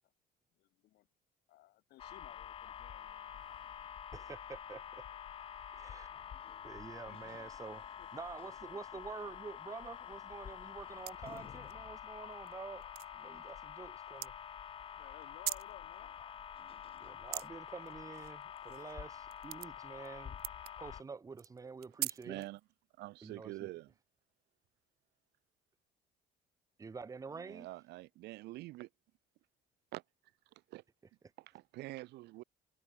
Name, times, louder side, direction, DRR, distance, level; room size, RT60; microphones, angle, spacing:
voice 1, 0.6-1.1 1.5-3.4 7.0-7.4 7.7-8.1 15.0-16.1, left 16 dB, 75° left, 1.1 m, -59 dB
sound 1, 2.0-21.0, left 8 dB, 35° left, 0.4 m, -48 dB
sound 2, 3.3-13.9, left 10 dB, 55° left, 6.7 m, -75 dB
voice 2, 4.1-5.0 5.7-6.1 6.6-7.8 8.1-14.3 17.0-20.4 20.8-22.4 23.2-23.7 26.8-27.7, right 4 dB, 20° right, 0.8 m, -48 dB
sound 3, 11.0-11.7 12.3-12.5 12.8-13.1 14.2-14.3 15.2-15.7 16.9-17.5 17.9-18.9 19.3-20.1 20.4-20.7 21.4-22.6, right 17 dB, 65° right, 0.4 m, -41 dB
voice 3, 22.2-22.6 23.0-23.9 27.3-28.9 29.9-30.0 30.7-30.8 31.4-32.4, right 18 dB, 80° right, 1.1 m, -46 dB
cardioid pair, 110°, 17 cm